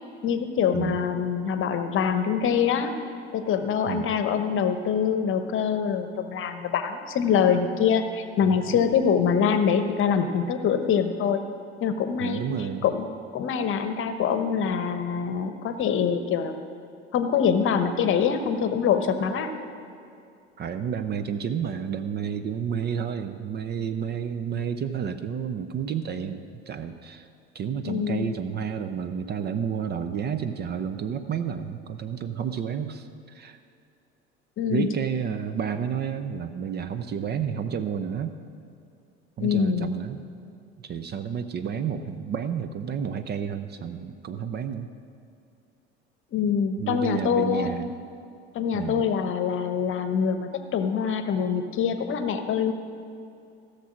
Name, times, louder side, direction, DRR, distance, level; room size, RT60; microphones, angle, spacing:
voice 1, 0.2-2.9 3.3-11.4 11.8-12.5 12.8-13.1 13.3-16.6 17.1-19.5 27.8-28.3 34.6-34.9 39.4-39.9 46.3-47.7 48.5-52.7, left 7 dB, 40° left, 9 dB, 1.0 m, -24 dB
voice 2, 12.2-12.9 20.6-27.3 27.5-33.6 34.7-38.4 39.4-40.2 40.8-44.9 46.8-47.9 48.7-49.0, right 7 dB, 30° right, 10 dB, 0.6 m, -30 dB
16.0 x 6.6 x 6.2 m, 2.6 s
figure-of-eight pair, 70°, 33 cm